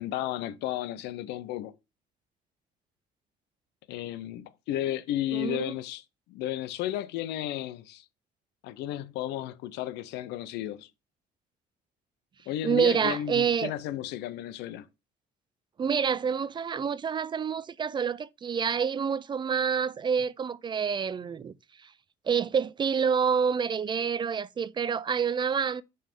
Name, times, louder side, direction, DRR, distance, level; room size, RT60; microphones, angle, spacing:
voice 1, 0.0-1.7 3.9-6.0 6.3-8.0 8.6-10.9 12.5-14.9, left 12 dB, 90° left, 0.6 m, -33 dB
voice 2, 5.3-5.7 12.6-13.7 15.8-21.9 22.2-25.8, right 6 dB, 25° right, 0.3 m, -28 dB
5.4 x 3.4 x 5.3 m
cardioid pair, 110°, 17 cm